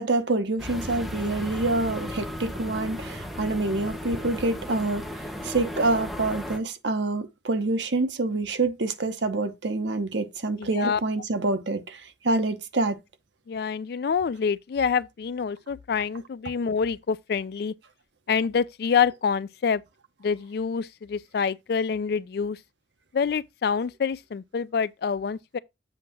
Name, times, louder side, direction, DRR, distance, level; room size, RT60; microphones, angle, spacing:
voice 1, 0.0-5.1 5.4-13.0, right 2 dB, 85° right, 1.0 m, -26 dB
sound 1, 0.6-6.6, left 1 dB, ahead, 1.0 m, -35 dB
voice 2, 10.6-11.0 13.5-17.7 18.3-19.8 20.2-22.6 23.1-25.6, left 6 dB, 60° left, 0.3 m, -26 dB
7.7 x 2.8 x 5.9 m
head